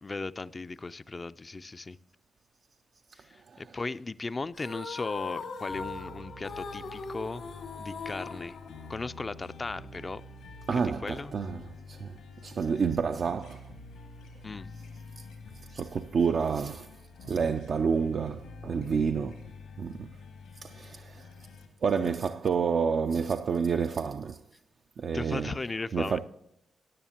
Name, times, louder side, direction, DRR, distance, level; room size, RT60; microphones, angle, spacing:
voice 1, 0.0-2.0 3.3-7.4 7.8-8.6 8.9-10.2 10.7-11.3 14.4-14.7 25.1-26.2, left 3 dB, 35° left, 0.4 m, -37 dB
sound 1, 4.5-9.4, left 4 dB, 70° left, 1.3 m, -40 dB
sound 2, 5.3-21.7, left 2 dB, 85° left, 2.0 m, -48 dB
voice 2, 10.7-12.1 12.4-13.6 15.2-15.3 15.7-16.9 17.2-19.4 19.8-20.1 20.6-21.3 21.8-24.4 25.0-25.5 25.9-26.2, right 6 dB, 60° right, 0.4 m, -29 dB
14.5 x 10.0 x 2.9 m
hypercardioid pair, 40°, 0 cm